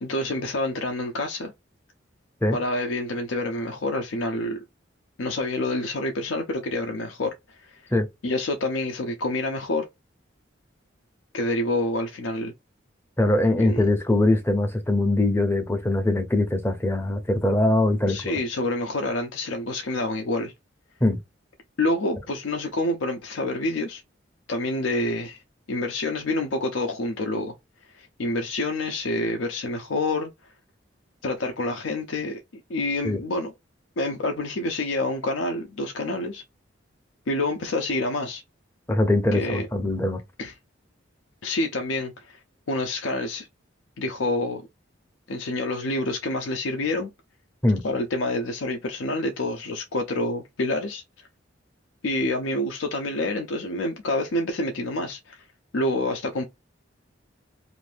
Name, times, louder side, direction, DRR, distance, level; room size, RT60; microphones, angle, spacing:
voice 1, 0.0-1.5 2.5-4.6 5.2-7.8 8.2-9.9 11.3-12.5 13.6-13.8 18.1-20.5 21.8-24.0 24.5-25.4 25.7-27.5 27.9-30.3 31.2-32.4 32.7-33.5 34.0-36.4 37.3-38.4 39.3-39.7 40.4-40.5 41.4-42.4 42.7-43.5 44.0-44.6 45.3-47.1 47.8-51.3 52.0-55.4 55.7-56.4, left 2 dB, 80° left, 0.6 m, -27 dB
voice 2, 13.2-18.3 21.0-21.2 33.0-33.2 38.9-40.2 47.6-47.8, left 1 dB, 10° left, 0.5 m, -22 dB
2.6 x 2.5 x 3.2 m
head